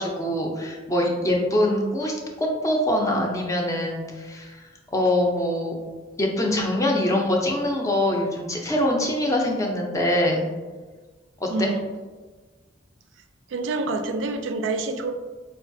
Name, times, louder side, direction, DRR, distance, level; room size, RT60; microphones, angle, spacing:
voice 1, 0.0-5.7 6.2-10.5 11.4-11.7, left 1 dB, 15° left, 0 dB, 0.4 m, -24 dB
voice 2, 11.5-11.9 13.5-15.1, right 3 dB, 85° right, 6 dB, 0.3 m, -27 dB
4.2 x 2.3 x 2.5 m, 1.3 s
head